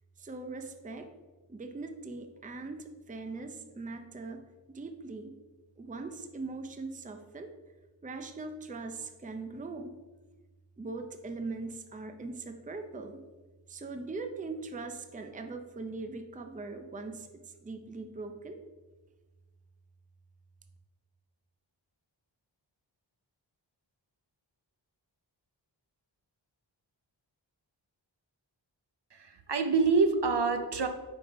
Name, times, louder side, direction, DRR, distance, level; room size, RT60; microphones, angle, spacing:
voice 1, 0.2-1.1 1.5-5.4 5.8-7.5 8.0-9.9 10.8-13.2 13.7-18.6, right 3 dB, 20° right, 6 dB, 0.5 m, -41 dB
voice 2, 29.1-30.9, right 4 dB, 65° right, 7 dB, 0.7 m, -26 dB
5.2 x 4.1 x 5.1 m, 1.3 s
wide cardioid pair, 55°, 45 cm